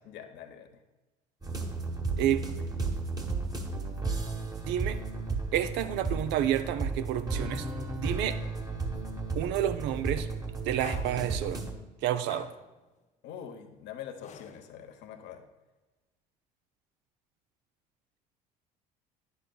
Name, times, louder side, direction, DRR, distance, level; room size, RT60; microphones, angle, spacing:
voice 1, 0.0-0.8 13.2-15.4, left 9 dB, 60° left, 6 dB, 0.9 m, -44 dB
sound 1, 1.4-11.7, right 3 dB, 20° right, 1.2 m, -34 dB
voice 2, 2.2-2.5 4.7-5.0 5.5-7.7 8.0-8.4 9.4-10.3 10.6-11.6 12.0-12.5, right 11 dB, 60° right, 11 dB, 0.6 m, -29 dB
sound 2, 10.8-11.5 12.3-12.8 14.2-15.0, left 7 dB, 35° left, 0.6 m, -47 dB
10.0 x 6.6 x 2.3 m, 1.2 s
hypercardioid pair, 60°, 21 cm